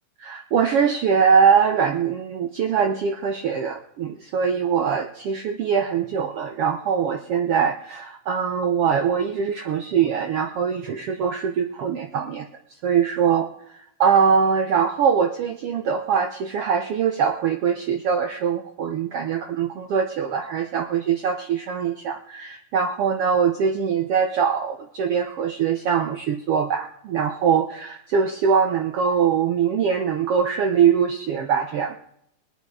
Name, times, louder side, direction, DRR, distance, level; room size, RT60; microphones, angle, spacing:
voice 1, 0.2-12.5 12.8-32.0, right 7 dB, 90° right, 6 dB, 1.2 m, -22 dB
19.5 x 10.0 x 4.8 m, 0.73 s
omnidirectional pair, 3.8 m